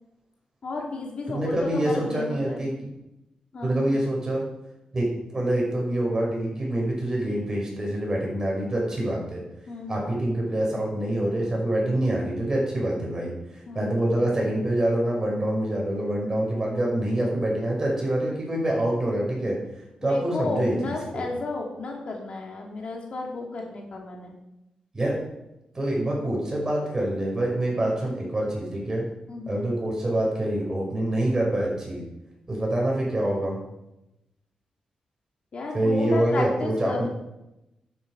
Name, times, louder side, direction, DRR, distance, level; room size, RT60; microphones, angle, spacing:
voice 1, 0.6-2.6 3.5-3.9 9.7-10.0 13.7-13.9 20.0-24.3 29.3-29.6 35.5-37.1, left 2 dB, 55° left, 0 dB, 2.7 m, -32 dB
voice 2, 1.3-2.7 3.6-4.4 4.9-9.4 9.9-19.6 20.0-21.2 24.9-25.2 25.7-29.1 29.5-32.0 32.5-33.6 35.7-37.1, right 1 dB, 25° right, -2 dB, 5.6 m, -26 dB
11.0 x 9.7 x 5.3 m, 0.90 s
cardioid pair, 100°, 2 cm